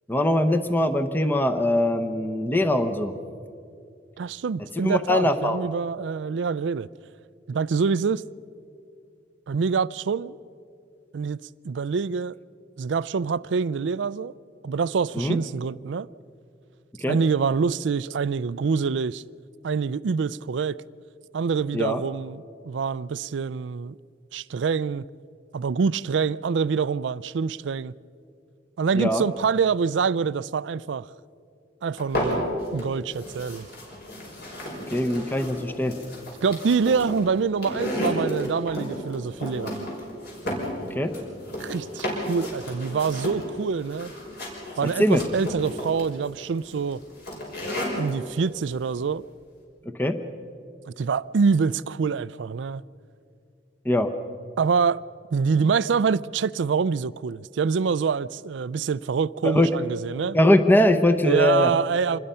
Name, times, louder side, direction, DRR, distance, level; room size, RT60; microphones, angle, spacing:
voice 1, 0.1-3.1 4.8-5.6 15.2-15.4 17.0-17.2 21.7-22.0 29.0-29.2 34.9-36.0 40.9-41.1 45.0-45.2 50.0-50.2 53.8-54.1 59.4-59.7 60.3-61.7, left 1 dB, 10° left, 0.8 m, -21 dB
voice 2, 4.2-6.9 7.5-8.2 9.5-10.4 11.1-12.4 12.8-14.3 14.6-16.1 17.1-19.2 19.6-20.8 21.3-24.0 24.3-25.1 25.5-27.9 28.8-31.1 31.8-33.7 36.4-39.9 41.6-44.1 44.8-47.0 48.0-49.2 50.9-52.8 54.6-55.0 55.3-60.4 61.2-62.2, right 5 dB, 75° right, 0.4 m, -25 dB
sound 1, 32.0-32.8 33.1-48.1, equal, 60° left, 5.8 m, -33 dB
26.5 x 20.5 x 5.6 m
head